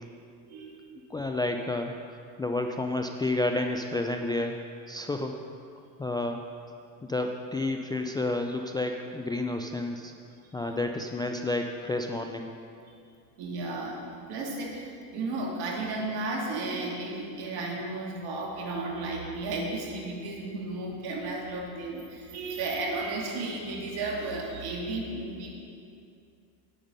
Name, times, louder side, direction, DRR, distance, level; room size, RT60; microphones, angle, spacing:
voice 1, 0.4-0.8 10.4-10.5 13.4-25.5, right 2 dB, 60° right, -1 dB, 2.5 m, -34 dB
voice 2, 1.1-4.6 4.9-5.4 6.0-6.4 7.0-10.1 10.5-12.5, left 2 dB, 10° left, 3 dB, 0.4 m, -30 dB
9.4 x 8.9 x 5.5 m, 2.4 s
supercardioid pair, 105°, 42 cm